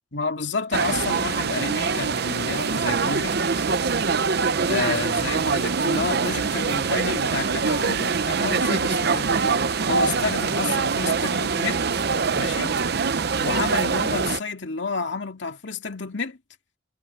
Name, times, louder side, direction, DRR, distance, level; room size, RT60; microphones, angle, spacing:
voice 1, 0.1-3.4 4.6-9.4 9.9-11.8 12.4-12.7 13.4-16.4, left 4 dB, 65° left, 2.3 m, -30 dB
sound 1, 0.7-14.4, right 5 dB, 55° right, 0.8 m, -24 dB
head